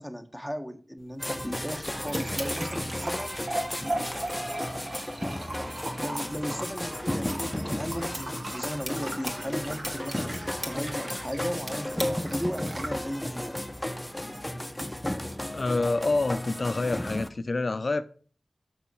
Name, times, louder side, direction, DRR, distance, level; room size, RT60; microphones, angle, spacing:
voice 1, 0.0-3.4 3.8-4.0 6.0-13.6, equal, 5° right, 1.3 m, -36 dB
sound 1, 1.0-16.0, right 1 dB, 65° right, 2.1 m, -40 dB
sound 2, 1.2-17.3, left 1 dB, 15° left, 0.8 m, -34 dB
sound 3, 1.7-12.6, right 1 dB, 30° right, 2.3 m, -44 dB
voice 2, 15.5-18.0, left 3 dB, 60° left, 0.5 m, -27 dB
6.8 x 6.2 x 6.2 m
cardioid pair, 45°, 0 cm